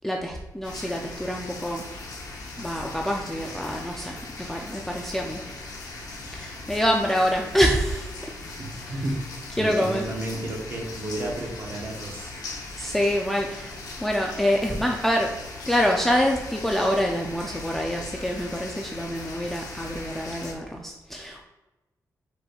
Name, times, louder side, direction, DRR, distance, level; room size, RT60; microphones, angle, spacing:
voice 1, 0.0-1.9 2.6-5.4 6.3-8.2 8.8-8.9 9.6-10.0 12.8-15.3 15.7-21.4, equal, 5° left, 0 dB, 0.4 m, -26 dB
sound 1, 0.6-20.5, left 2 dB, 75° left, 0.9 m, -39 dB
voice 2, 8.6-9.2 9.6-12.3, right 1 dB, 35° right, 0 dB, 1.0 m, -32 dB
5.2 x 4.3 x 2.3 m, 1.0 s
wide cardioid pair, 145°, 7 cm